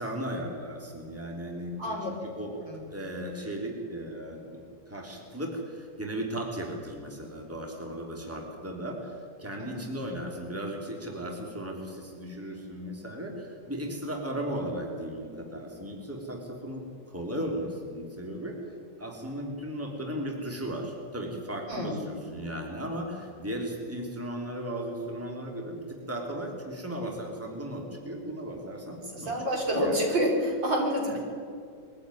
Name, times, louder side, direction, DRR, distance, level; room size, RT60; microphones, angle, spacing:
voice 1, 0.0-2.5 2.9-4.6 4.9-18.6 19.0-30.0 31.1-31.2, right 1 dB, 5° right, 1 dB, 3.2 m, -36 dB
voice 2, 1.8-2.1 2.5-2.8 21.7-22.0 29.1-31.2, equal, 75° right, -2 dB, 5.9 m, -28 dB
22.5 x 15.0 x 9.9 m, 2.2 s
omnidirectional pair, 2.1 m